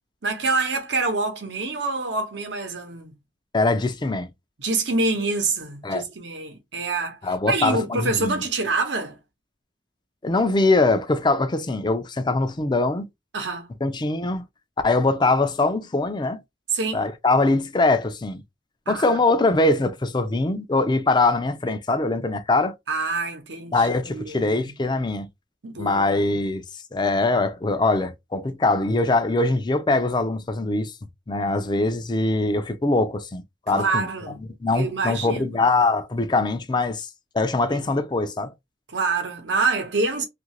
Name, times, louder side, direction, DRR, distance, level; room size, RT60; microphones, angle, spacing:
voice 1, 0.2-3.2 4.6-9.2 13.3-13.7 16.7-17.0 18.9-19.2 22.9-23.9 24.1-24.7 25.6-26.2 33.7-34.4 34.7-35.6 37.7-37.9 38.9-40.2, right 3 dB, 80° right, 0.9 m, -26 dB
voice 2, 3.5-4.3 5.8-6.0 7.2-8.4 10.2-13.1 13.8-14.5 14.8-16.4 16.9-18.4 18.9-22.7 23.7-25.3 25.8-26.6 26.9-30.9 31.3-34.1 34.6-37.1 37.3-38.5, left 2 dB, 25° left, 0.4 m, -22 dB
2.8 x 2.5 x 2.9 m
head